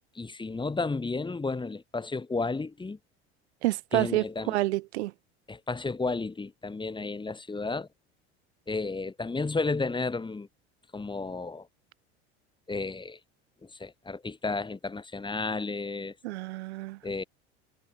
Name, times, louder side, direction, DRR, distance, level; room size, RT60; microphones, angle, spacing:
voice 1, 0.1-3.0 3.9-4.6 5.5-7.9 8.7-10.5 10.9-11.7 12.7-13.2 13.6-16.1 17.0-17.2, left 3 dB, 15° left, 2.8 m, -32 dB
voice 2, 3.6-5.1 16.2-17.0, right 18 dB, 80° right, 0.7 m, -28 dB
hypercardioid pair, 85°, 33 cm